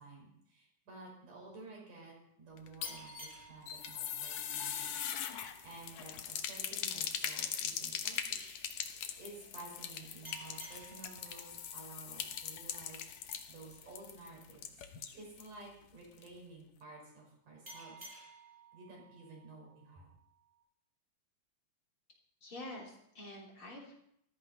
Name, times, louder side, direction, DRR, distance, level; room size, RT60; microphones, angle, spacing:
voice 1, 0.0-5.0 5.6-8.6 9.2-14.6 15.1-18.1 18.7-20.1, right 3 dB, 85° right, -2 dB, 7.1 m, -53 dB
sound 1, 2.6-15.5 15.8-15.9 16.2-16.3, left 9 dB, 70° left, 2.3 m, -41 dB
sound 2, 2.8-6.1 10.2-13.5 17.7-20.6, right 2 dB, 20° right, 7.4 m, -56 dB
voice 2, 22.4-23.9, left 1 dB, 40° left, -2 dB, 4.0 m, -47 dB
14.5 x 14.0 x 5.5 m, 0.74 s
omnidirectional pair, 3.6 m